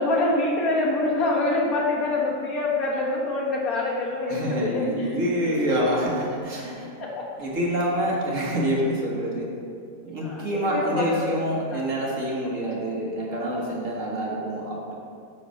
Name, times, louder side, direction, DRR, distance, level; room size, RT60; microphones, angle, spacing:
voice 1, 0.0-5.2 7.0-7.3 10.2-11.4 11.7-11.9, left 2 dB, 65° left, -4 dB, 1.9 m, -25 dB
voice 2, 4.3-6.9 7.4-9.5 10.1-14.9, equal, 55° right, -3 dB, 1.8 m, -26 dB
9.8 x 4.1 x 6.3 m, 2.3 s
omnidirectional pair, 1.7 m